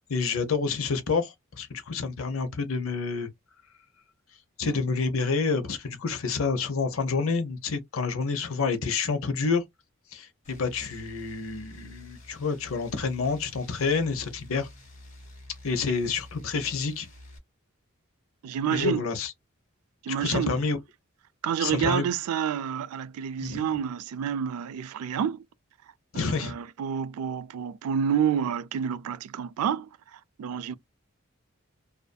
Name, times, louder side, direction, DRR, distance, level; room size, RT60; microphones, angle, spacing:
voice 1, 0.1-3.3 4.6-9.6 10.1-14.7 15.6-17.1 18.7-19.3 20.1-20.8 21.6-22.1 23.4-23.7 26.1-26.6, left 4 dB, 70° left, 0.6 m, -28 dB
sound 1, 10.4-17.4, left 1 dB, 35° left, 1.0 m, -48 dB
voice 2, 18.4-19.1 20.0-20.6 21.4-25.4 26.1-30.7, right 8 dB, 90° right, 0.3 m, -29 dB
2.5 x 2.4 x 2.2 m
head